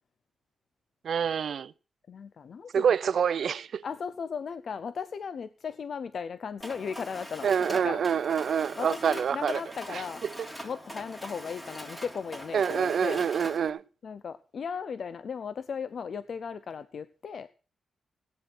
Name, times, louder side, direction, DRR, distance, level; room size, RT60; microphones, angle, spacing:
voice 1, 1.0-1.7 2.7-3.8 7.4-9.6 9.9-10.5 12.5-13.8, right 7 dB, 70° right, 0.6 m, -27 dB
voice 2, 2.1-2.8 3.8-8.0 8.8-10.2 10.6-13.2 14.0-17.5, left 6 dB, 60° left, 0.7 m, -36 dB
Mechanisms, 6.6-13.7, equal, 10° left, 3.3 m, -43 dB
17.0 x 9.4 x 6.0 m
cardioid pair, 95°, 0 cm